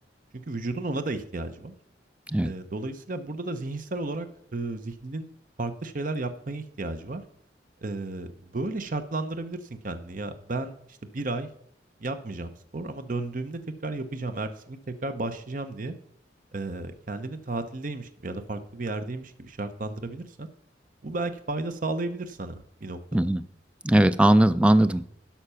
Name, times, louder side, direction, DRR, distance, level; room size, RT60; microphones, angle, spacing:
voice 1, 0.5-1.7 2.4-4.3 4.5-5.3 5.6-7.2 7.8-10.7 11.1-11.5 12.0-16.0 16.5-20.5 21.0-23.0, right 2 dB, 45° right, 9 dB, 0.7 m, -33 dB
voice 2, 23.1-23.4 23.8-25.1, right 1 dB, 5° right, 13 dB, 0.3 m, -19 dB
11.5 x 5.8 x 5.6 m, 0.66 s
head